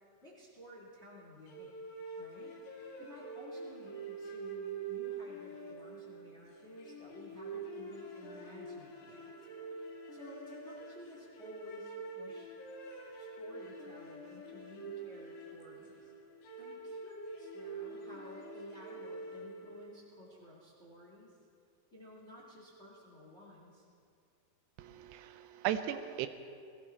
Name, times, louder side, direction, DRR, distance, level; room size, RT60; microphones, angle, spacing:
voice 1, 0.2-1.7 2.2-9.3 9.7-9.8 10.1-12.5 13.2-16.1 16.6-21.4 21.9-23.8, left 1 dB, 25° left, -4 dB, 1.7 m, -53 dB
sound 1, 1.5-20.0, right 3 dB, 75° left, 3.9 m, -46 dB
voice 2, 24.8-26.3, right 11 dB, 85° right, 10 dB, 2.6 m, -36 dB
21.0 x 15.0 x 4.4 m, 2.3 s
omnidirectional pair, 4.9 m